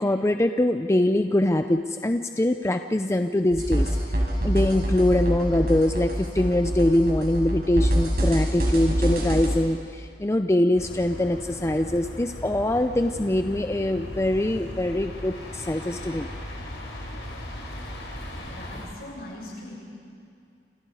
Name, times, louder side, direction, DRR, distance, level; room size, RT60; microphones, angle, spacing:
voice 1, 0.0-16.3, left 1 dB, 15° left, 7 dB, 0.5 m, -23 dB
sound 1, 3.5-9.5, right 1 dB, 60° right, 5.8 m, -25 dB
sound 2, 10.7-18.9, equal, 85° left, 5.3 m, -38 dB
voice 2, 18.4-19.7, left 1 dB, 60° left, -3 dB, 7.8 m, -40 dB
28.5 x 28.0 x 4.9 m, 2.4 s
head